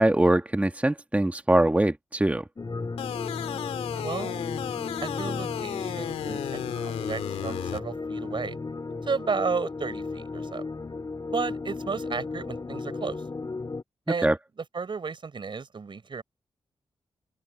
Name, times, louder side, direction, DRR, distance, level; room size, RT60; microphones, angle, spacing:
voice 1, 0.0-2.4 14.2-14.4, right 1 dB, 15° right, 1.7 m, -22 dB
sound 1, 2.6-13.8, left 3 dB, 40° left, 2.8 m, -35 dB
sound 2, 3.0-7.8, left 10 dB, 85° left, 2.7 m, -34 dB
voice 2, 4.0-4.4 5.0-8.6 9.0-10.7 11.3-13.2 14.1-14.3 14.7-16.2, right 5 dB, 55° right, 4.5 m, -33 dB
open air
supercardioid pair, 40°, 10 cm